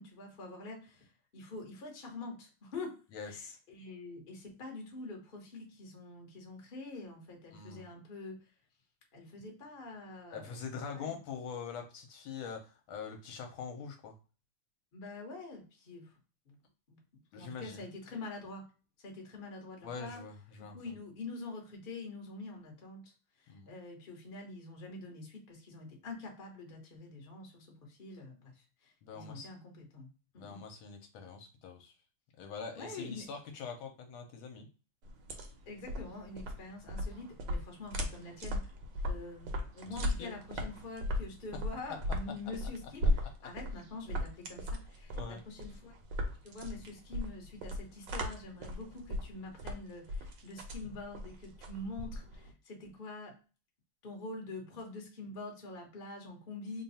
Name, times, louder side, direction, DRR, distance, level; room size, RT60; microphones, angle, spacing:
voice 1, 0.0-3.0 3.2-8.4 9.1-10.6 10.9-11.2 14.9-16.1 16.5-16.6 16.9-18.6 19.0-20.2 20.6-23.1 23.4-30.1 30.3-30.6 32.8-33.3 35.7-38.7 39.1-45.9 46.4-53.3 54.0-56.8, left 3 dB, 35° left, 1 dB, 0.8 m, -46 dB
voice 2, 3.1-3.6 7.5-7.9 10.3-14.1 17.3-17.8 19.8-20.8 23.5-23.7 29.0-29.5 30.4-31.9 32.4-34.7 39.9-40.4 45.1-45.4, left 5 dB, 75° left, 4 dB, 1.4 m, -44 dB
sound 1, 35.0-52.5, equal, 65° right, 1.3 m, -37 dB
3.5 x 2.3 x 4.0 m, 0.35 s
omnidirectional pair, 2.4 m